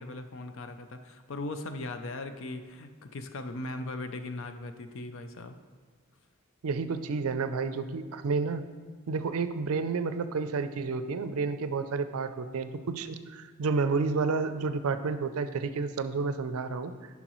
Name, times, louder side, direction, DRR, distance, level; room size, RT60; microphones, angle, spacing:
voice 1, 0.0-5.6, left 2 dB, 60° left, 8 dB, 0.5 m, -39 dB
voice 2, 6.6-8.6 9.1-16.9, right 4 dB, 75° right, 11 dB, 0.4 m, -30 dB
10.0 x 5.8 x 3.0 m, 1.5 s
head